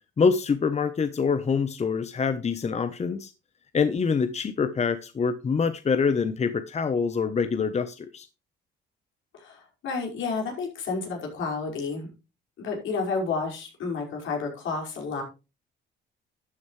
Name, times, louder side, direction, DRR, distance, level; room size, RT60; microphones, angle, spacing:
voice 1, 0.2-3.3 3.7-8.3, left 5 dB, 35° left, 0.9 m, -25 dB
voice 2, 9.3-12.1 12.6-15.2, left 4 dB, 80° left, 5.4 m, -31 dB
12.5 x 9.4 x 3.2 m
cardioid pair, 90°, 20 cm